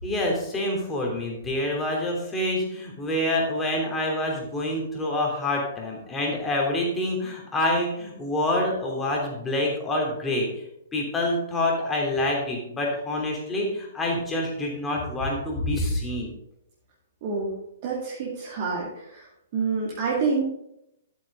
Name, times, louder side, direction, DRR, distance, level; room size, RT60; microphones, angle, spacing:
voice 1, 0.0-10.6 10.9-16.3, left 1 dB, 10° left, -1 dB, 3.1 m, -27 dB
voice 2, 17.2-17.5 17.8-19.3 19.5-20.4, right 4 dB, 40° right, -4 dB, 2.3 m, -27 dB
12.5 x 8.2 x 3.8 m, 0.81 s
figure-of-eight pair, 115°, 0 cm